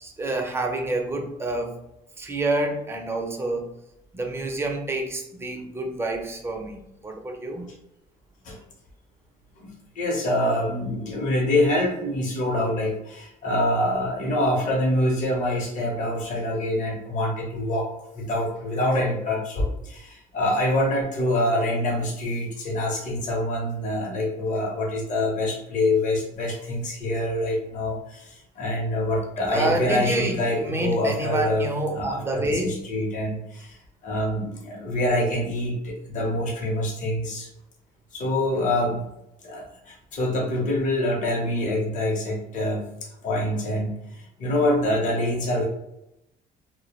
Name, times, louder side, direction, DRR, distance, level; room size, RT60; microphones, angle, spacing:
voice 1, 0.0-1.7 2.2-3.7 4.1-7.7 29.5-32.8, right 2 dB, 15° right, 2 dB, 0.4 m, -28 dB
voice 2, 9.6-17.9 18.1-37.5 38.1-39.1 39.4-45.6, left 1 dB, 50° left, -2 dB, 0.7 m, -25 dB
2.1 x 2.0 x 2.9 m, 0.84 s
cardioid pair, 110°, 17 cm